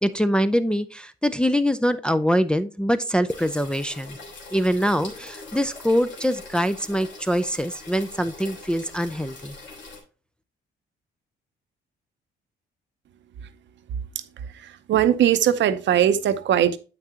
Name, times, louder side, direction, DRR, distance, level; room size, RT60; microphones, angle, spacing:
voice 1, 0.0-4.2 4.5-9.5, equal, 5° left, 0.4 m, -24 dB
sound 1, 3.3-10.0, left 3 dB, 70° left, 2.2 m, -42 dB
voice 2, 14.1-16.8, right 10 dB, 65° right, 0.7 m, -21 dB
7.9 x 5.9 x 2.8 m
cardioid pair, 90°, 20 cm